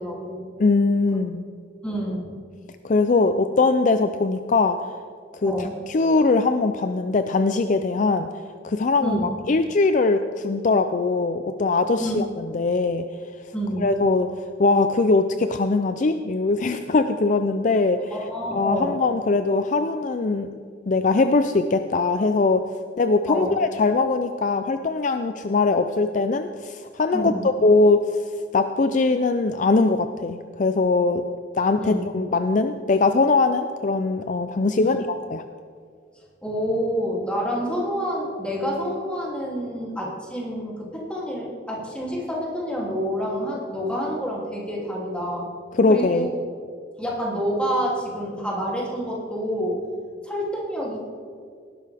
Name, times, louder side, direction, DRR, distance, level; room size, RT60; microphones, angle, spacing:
voice 1, 0.0-0.5 1.8-2.3 5.4-5.7 9.0-9.3 12.0-12.2 13.5-13.9 18.1-19.0 23.3-23.5 27.1-27.4 31.8-32.1 34.8-35.0 36.4-45.5 45.9-46.3 47.0-49.8 50.2-51.0, equal, 5° left, -4 dB, 2.8 m, -28 dB
voice 2, 0.6-1.4 2.8-4.8 5.3-8.3 8.6-9.2 9.5-13.0 13.8-14.3 14.6-18.1 18.5-20.5 20.9-22.6 23.0-28.2 28.5-31.2 31.6-35.4 45.7-46.3, left 3 dB, 45° left, 8 dB, 0.4 m, -21 dB
18.5 x 11.0 x 3.5 m, 2.1 s
head